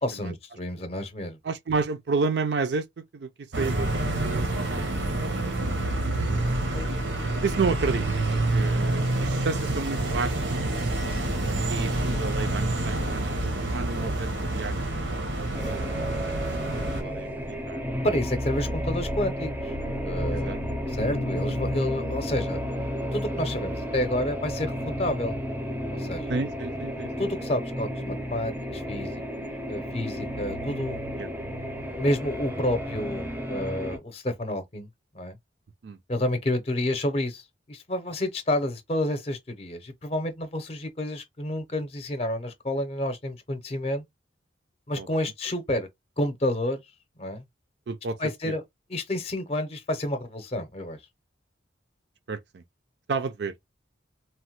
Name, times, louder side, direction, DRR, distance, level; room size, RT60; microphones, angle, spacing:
voice 1, 0.0-1.4 6.7-6.9 18.0-19.7 20.0-20.6 20.9-22.6 23.1-24.7 25.0-25.4 25.9-26.3 27.2-29.2 29.7-31.1 32.0-34.9 35.1-35.4 36.1-44.0 44.9-45.9 46.2-46.8 47.2-47.4 48.2-48.6 48.9-51.0, left 1 dB, 35° left, 0.6 m, -29 dB
voice 2, 1.4-5.1 5.7-6.2 7.4-10.5 11.7-15.0 15.4-16.7 17.0-17.8 18.7-18.8 20.3-20.6 26.3-27.3 31.2-31.3 35.8-36.0 44.9-45.1 47.9-48.2 48.5-48.6 52.3-52.6 53.1-53.5, right 4 dB, 65° right, 0.4 m, -31 dB
sound 1, 3.5-17.0, right 2 dB, 80° right, 0.9 m, -27 dB
sound 2, 15.5-34.0, equal, 10° right, 0.5 m, -32 dB
Bass guitar, 21.0-24.5, left 4 dB, 90° left, 0.4 m, -42 dB
3.0 x 2.1 x 3.0 m
head